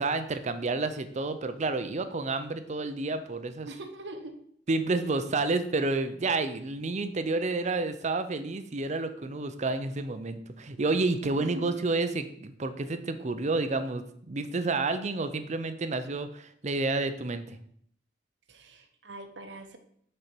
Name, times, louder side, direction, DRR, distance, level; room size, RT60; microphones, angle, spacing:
voice 1, 0.0-3.7 4.7-17.6, right 3 dB, 40° right, 10 dB, 0.6 m, -30 dB
voice 2, 3.6-4.4 11.4-11.7 18.5-19.8, right 1 dB, 75° right, 7 dB, 1.0 m, -42 dB
6.5 x 4.4 x 6.0 m, 0.65 s
head